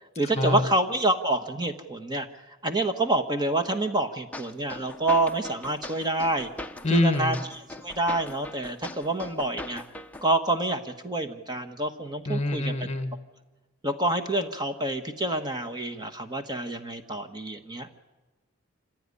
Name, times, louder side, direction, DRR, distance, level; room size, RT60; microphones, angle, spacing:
voice 1, 0.2-2.3 2.6-6.5 6.9-7.4 7.8-9.8 10.2-12.7 13.8-17.9, right 2 dB, 20° right, 7 dB, 1.3 m, -27 dB
sound 1, 4.3-10.3, left 1 dB, 5° left, 0.8 m, -41 dB
voice 2, 6.8-7.4 12.3-13.1, left 2 dB, 30° left, 9 dB, 1.7 m, -25 dB
26.5 x 16.0 x 9.8 m, 1.2 s
head